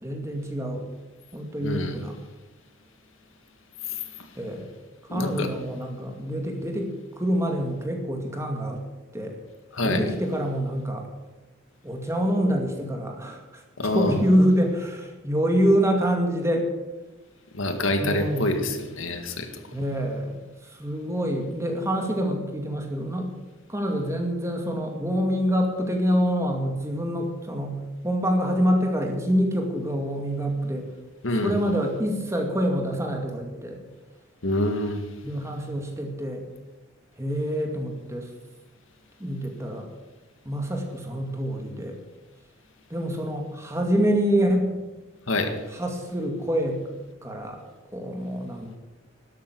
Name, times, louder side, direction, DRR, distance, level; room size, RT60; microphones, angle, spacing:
voice 1, 0.0-0.9 1.3-2.1 4.4-4.7 5.0-8.8 9.1-9.4 9.8-11.1 11.8-16.7 18.0-18.5 19.7-23.3 23.7-27.8 28.0-30.9 31.4-33.8 35.2-36.4 37.2-38.3 39.2-39.9 40.4-42.0 42.9-44.7 45.7-46.8 47.2-47.6 47.9-48.8, equal, 15° right, 2 dB, 2.3 m, -26 dB
voice 2, 1.6-1.9 3.8-4.3 5.1-5.5 9.7-10.0 13.8-14.2 17.5-19.6 31.2-31.6 34.4-35.0 45.3-45.5, left 2 dB, 75° left, 6 dB, 1.9 m, -26 dB
12.5 x 12.5 x 6.9 m, 1.1 s
head